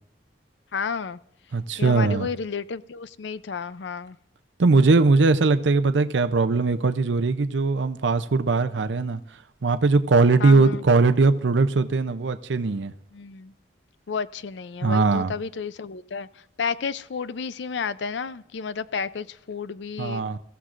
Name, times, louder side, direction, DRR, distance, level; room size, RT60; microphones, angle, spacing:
voice 1, 0.7-1.2 1.8-4.2 10.4-10.8 13.1-13.5 14.1-16.3 16.6-20.2, left 5 dB, 80° left, 0.5 m, -31 dB
voice 2, 1.5-2.3 4.6-9.2 9.6-12.9 14.8-15.3 20.0-20.4, right 3 dB, 85° right, 0.6 m, -20 dB
22.5 x 15.0 x 2.5 m
head